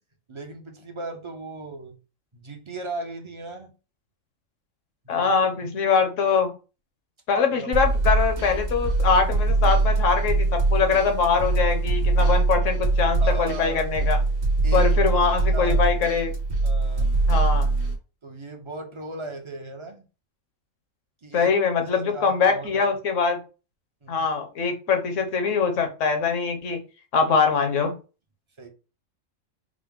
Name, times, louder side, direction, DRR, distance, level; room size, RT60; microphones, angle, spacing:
voice 1, 0.3-2.0 2.3-3.7 5.0-5.7 7.5-7.7 13.2-13.9 14.6-15.8 16.6-17.1 18.2-20.0 21.2-21.5 21.8-23.0 24.0-24.3 28.6-28.7, right 2 dB, 30° right, 0.6 m, -37 dB
voice 2, 5.1-6.5 7.3-14.2 14.7-16.3 17.3-17.7 21.3-23.4 24.1-26.8 27.1-27.9, left 5 dB, 70° left, 1.2 m, -23 dB
sound 1, 7.7-17.9, right 3 dB, 60° right, 1.3 m, -22 dB
4.8 x 2.1 x 3.6 m
omnidirectional pair, 1.4 m